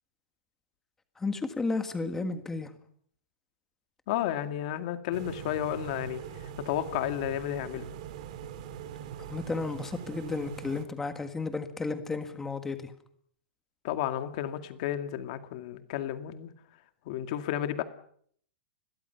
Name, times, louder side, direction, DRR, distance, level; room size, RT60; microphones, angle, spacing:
voice 1, 1.2-2.7 9.3-12.9, left 3 dB, 5° left, 8 dB, 1.6 m, -33 dB
voice 2, 4.1-7.9 13.8-16.5 17.1-17.8, left 11 dB, 40° left, 8 dB, 2.1 m, -32 dB
sound 1, 5.1-10.8, right 9 dB, 40° right, 2.6 m, -42 dB
30.0 x 22.0 x 5.8 m, 0.63 s
supercardioid pair, 180°, 6 cm